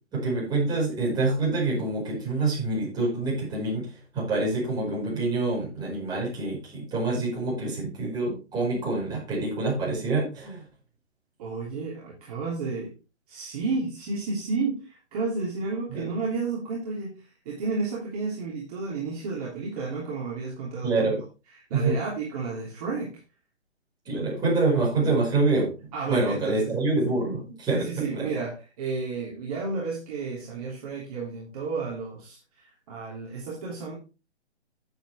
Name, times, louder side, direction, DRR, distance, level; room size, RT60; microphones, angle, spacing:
voice 1, 0.1-3.9 4.1-10.6 15.9-16.1 20.8-21.2 21.7-22.0 24.0-25.7 26.1-28.3, right 3 dB, 10° right, -5 dB, 5.2 m, -26 dB
voice 2, 11.4-12.9 13.3-21.1 21.7-23.1 25.9-26.7 27.7-32.4 32.9-33.9, right 4 dB, 35° right, -4 dB, 3.1 m, -32 dB
10.0 x 8.0 x 3.4 m, 0.31 s
figure-of-eight pair, 140°, 34 cm